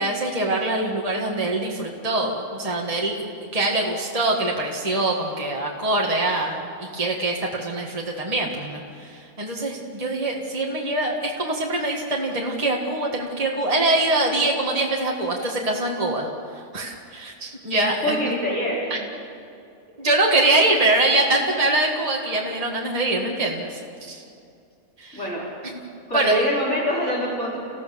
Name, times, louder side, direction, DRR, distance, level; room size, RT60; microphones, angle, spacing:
voice 1, 0.0-18.2 18.9-19.0 20.0-23.8 24.1-24.2 25.0-25.2 26.1-26.4, right 2 dB, 25° right, -1 dB, 2.0 m, -24 dB
voice 2, 18.0-19.0 25.1-25.4 26.1-27.6, equal, 50° left, -8 dB, 5.1 m, -25 dB
30.0 x 16.0 x 7.0 m, 2.5 s
omnidirectional pair, 1.5 m